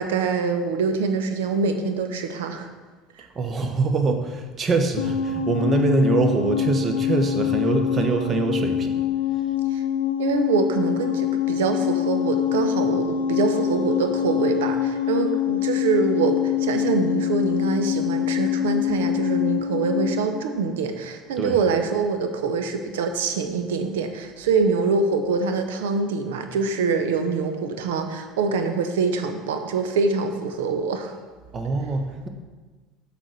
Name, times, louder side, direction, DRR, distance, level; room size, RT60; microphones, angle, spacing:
voice 1, 0.0-2.7 3.2-3.3 9.7-9.8 10.2-31.1, right 4 dB, 65° right, 7 dB, 0.7 m, -24 dB
voice 2, 3.3-8.9 21.4-21.6 31.5-32.3, right 3 dB, 35° right, 6 dB, 1.0 m, -23 dB
sound 1, 5.0-20.3, left 10 dB, 70° left, 0.5 m, -24 dB
7.4 x 5.1 x 6.2 m, 1.3 s
figure-of-eight pair, 65°, 0 cm